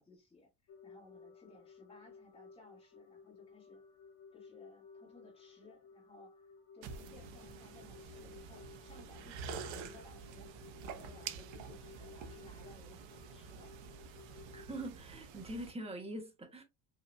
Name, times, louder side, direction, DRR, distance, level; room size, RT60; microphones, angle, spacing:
voice 1, 0.0-3.8 4.3-10.5 10.8-13.8, left 2 dB, 10° left, 2.0 m, -60 dB
sound 1, 0.7-14.9, left 5 dB, 60° left, 0.7 m, -57 dB
sound 2, 6.8-15.7, right 6 dB, 70° right, 0.9 m, -48 dB
voice 2, 14.5-16.6, right 1 dB, 15° right, 0.9 m, -43 dB
5.4 x 2.9 x 2.3 m
cardioid pair, 160°, 48 cm